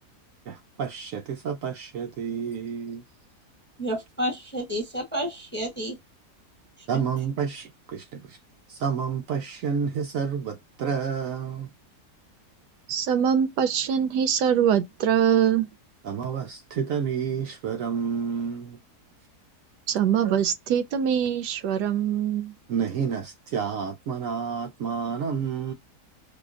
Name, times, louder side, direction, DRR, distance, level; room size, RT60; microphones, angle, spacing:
voice 1, 0.5-3.0 6.9-8.4 8.7-11.7 16.0-18.8 20.2-20.4 22.7-25.7, right 6 dB, 70° right, 0.8 m, -30 dB
voice 2, 3.8-6.0, equal, 10° left, 0.6 m, -30 dB
voice 3, 12.9-15.7 19.9-22.5, right 8 dB, 90° right, 1.2 m, -23 dB
4.9 x 2.1 x 2.4 m
omnidirectional pair, 1.7 m